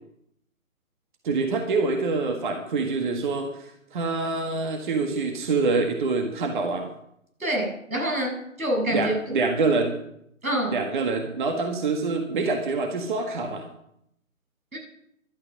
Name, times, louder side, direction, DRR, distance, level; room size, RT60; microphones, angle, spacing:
voice 1, 1.2-6.9 8.9-9.9 10.7-13.6, right 3 dB, 35° right, 5 dB, 1.8 m, -26 dB
voice 2, 7.4-9.1 10.4-10.8 14.7-14.8, equal, 85° right, 2 dB, 7.2 m, -26 dB
17.0 x 12.0 x 6.4 m, 0.76 s
figure-of-eight pair, 145°, 41 cm